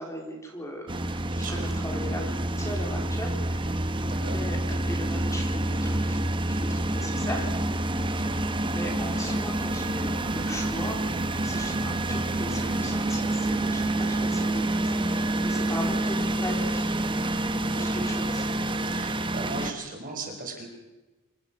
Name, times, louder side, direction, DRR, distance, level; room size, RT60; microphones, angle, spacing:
voice 1, 0.0-4.6 4.8-7.5 8.2-8.4 8.7-16.9 17.7-18.5, equal, 15° left, 1 dB, 4.1 m, -38 dB
sound 1, 0.9-19.7, right 1 dB, 20° right, 1.2 m, -28 dB
voice 2, 1.3-1.6 4.1-4.4 6.9-7.2 13.9-14.3 17.7-18.1 18.9-20.7, right 3 dB, 40° right, 3 dB, 4.8 m, -38 dB
26.5 x 18.0 x 6.2 m, 1.1 s
head